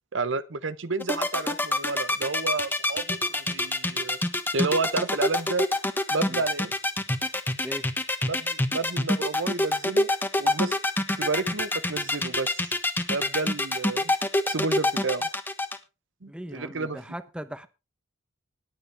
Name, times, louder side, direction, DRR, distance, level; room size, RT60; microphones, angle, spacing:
voice 1, 0.1-3.2 3.5-4.2 4.5-5.6 6.1-6.7 8.2-10.1 10.4-10.8 11.2-12.7 13.1-14.1 14.5-15.3 16.2-17.0, right 3 dB, 75° right, 0.9 m, -30 dB
sound 1, 1.0-15.8, left 1 dB, 10° left, 1.3 m, -25 dB
voice 2, 16.3-17.7, equal, 5° right, 0.9 m, -38 dB
20.0 x 8.1 x 3.5 m
head